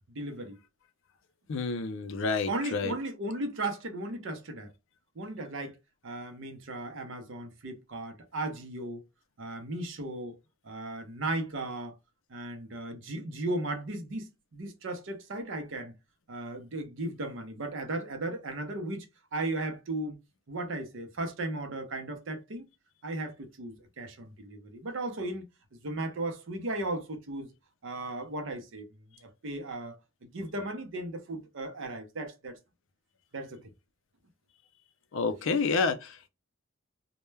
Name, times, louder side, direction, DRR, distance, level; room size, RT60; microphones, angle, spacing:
voice 1, 0.1-0.6 2.5-4.7 5.2-5.8 6.0-9.0 9.4-10.4 10.6-12.0 12.3-15.9 16.3-19.1 19.3-20.2 20.5-22.6 23.0-25.4 25.8-27.5 27.8-32.6 33.3-33.6, right 2 dB, 65° right, 0.6 m, -36 dB
voice 2, 1.5-2.9 35.1-36.3, left 4 dB, 65° left, 0.4 m, -29 dB
2.2 x 2.1 x 3.1 m
head